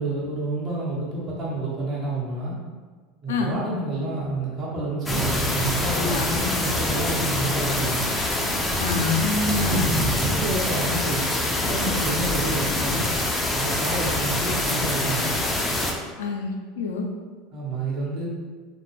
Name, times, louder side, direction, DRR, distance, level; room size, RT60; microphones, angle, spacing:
voice 1, 0.0-2.5 3.2-8.1 10.1-11.2 11.6-13.1 13.5-15.3 17.5-18.3, right 2 dB, 45° right, -5 dB, 0.9 m, -29 dB
sound 1, 5.1-15.9, left 1 dB, 15° left, 0.4 m, -25 dB
voice 2, 5.9-6.3 8.8-9.9 16.2-17.1, left 4 dB, 85° left, 3 dB, 0.3 m, -26 dB
2.1 x 2.1 x 3.1 m, 1.5 s
hypercardioid pair, 95°, 0 cm